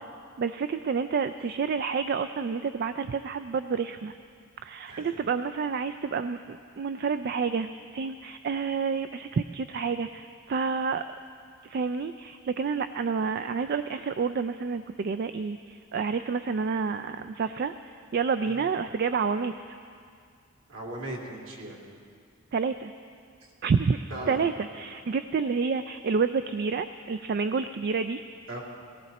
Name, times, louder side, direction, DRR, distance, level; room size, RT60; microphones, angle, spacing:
voice 1, 0.4-4.2 4.6-11.0 11.6-17.7 18.1-19.8 22.5-22.9 23.6-24.0 24.3-28.2, right 5 dB, 50° right, 10 dB, 0.3 m, -29 dB
voice 2, 20.7-21.8 24.1-24.4 28.5-28.6, right 1 dB, 70° right, -3 dB, 2.8 m, -38 dB
17.5 x 17.0 x 4.1 m, 2.3 s
head